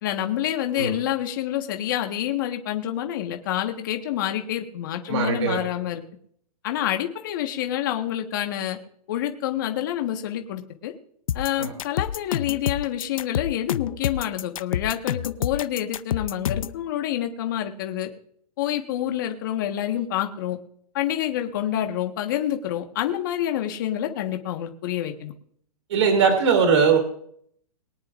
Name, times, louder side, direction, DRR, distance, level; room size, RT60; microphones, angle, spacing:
voice 1, 0.0-6.0 6.6-8.8 9.1-10.9 11.3-18.1 18.6-20.6 20.9-25.3, left 11 dB, 30° left, 4 dB, 1.4 m, -27 dB
voice 2, 5.1-5.6 11.6-11.7 25.9-27.0, right 6 dB, 50° right, 3 dB, 2.8 m, -20 dB
sound 1, 11.3-16.8, left 9 dB, 60° left, 0.6 m, -28 dB
22.5 x 9.8 x 2.5 m, 0.66 s
hypercardioid pair, 175°, 20 cm